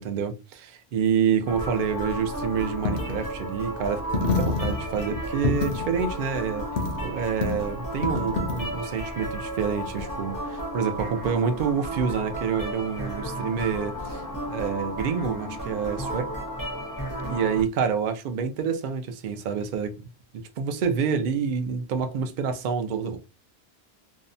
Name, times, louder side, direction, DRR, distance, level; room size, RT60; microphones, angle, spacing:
voice 1, 0.0-6.7 7.0-14.2 14.5-16.3 17.3-23.2, right 6 dB, 60° right, 0.6 m, -27 dB
Coin (dropping), 1.5-10.0, left 3 dB, 70° left, 0.7 m, -31 dB
sound 1, 1.5-17.6, right 1 dB, 25° left, 0.6 m, -34 dB
2.7 x 2.1 x 2.5 m
omnidirectional pair, 1.1 m